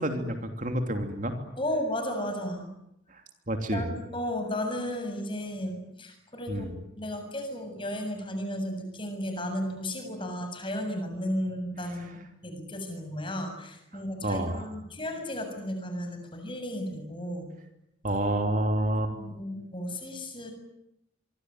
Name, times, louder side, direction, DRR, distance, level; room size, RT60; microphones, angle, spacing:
voice 1, 0.0-1.3 3.1-3.2 3.5-3.9 6.5-6.8 14.2-14.6 18.0-19.1, right 1 dB, 40° right, 5 dB, 3.1 m, -28 dB
voice 2, 1.6-2.7 3.7-17.5 18.8-20.5, left 1 dB, 25° left, 6 dB, 7.3 m, -34 dB
26.0 x 24.5 x 9.5 m, 0.82 s
head